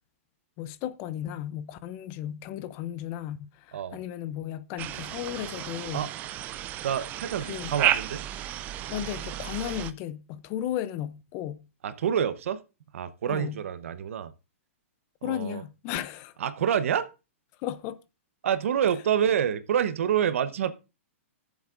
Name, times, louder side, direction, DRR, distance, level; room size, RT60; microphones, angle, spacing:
voice 1, 0.6-6.1 7.4-7.7 8.9-11.7 13.3-13.6 15.2-16.3 17.6-18.0, left 11 dB, 30° left, 0.5 m, -35 dB
sound 1, 4.8-9.9, right 13 dB, 20° right, 0.4 m, -32 dB
voice 2, 6.8-8.2 11.8-12.6 12.9-14.3 15.2-15.6 16.4-17.1 18.4-20.7, right 9 dB, 70° right, 0.9 m, -27 dB
18.0 x 7.2 x 2.5 m
hypercardioid pair, 155°, 8 cm